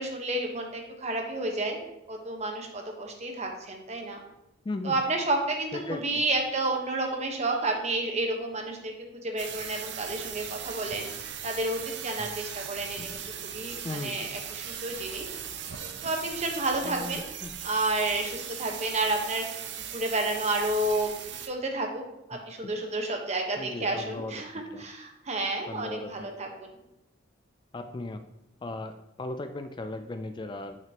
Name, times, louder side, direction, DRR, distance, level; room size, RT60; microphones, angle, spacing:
voice 1, 0.0-1.8 2.1-4.2 4.8-8.9 9.2-13.2 13.5-15.4 16.0-17.2 17.6-21.1 21.4-22.0 22.3-26.7, right 2 dB, 35° right, 3 dB, 1.1 m, -31 dB
voice 2, 4.7-5.0 5.7-6.2 12.2-12.3 13.0-13.1 13.8-14.3 16.8-17.5 22.3-22.8 23.6-24.3 24.7-24.8 25.7-26.3 27.7-28.2 28.6-30.8, left 2 dB, 25° left, 8 dB, 0.3 m, -37 dB
sound 1, 9.4-21.5, right 8 dB, 60° right, 0.7 m, -38 dB
9.0 x 5.9 x 2.9 m, 0.93 s
head